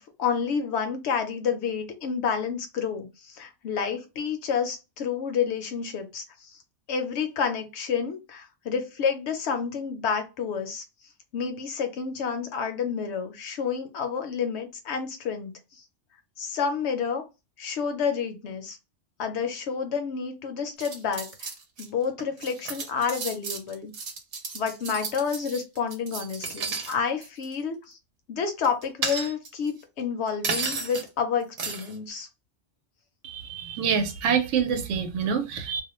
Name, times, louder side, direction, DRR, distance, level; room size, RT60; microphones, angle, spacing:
voice 1, 0.0-6.6 6.9-10.8 11.3-15.8 16.4-17.2 17.6-18.8 19.2-21.5 21.8-23.9 24.5-28.0 28.3-32.3, left 6 dB, 70° left, 0.8 m, -29 dB
sound 1, 20.8-21.8 22.2-26.9 27.2-27.5 28.6-29.7 30.4-31.1 31.6-31.9, right 4 dB, 60° right, 0.8 m, -33 dB
voice 2, 33.2-35.8, right 7 dB, 85° right, 0.9 m, -26 dB
2.3 x 2.1 x 2.9 m
omnidirectional pair, 1.2 m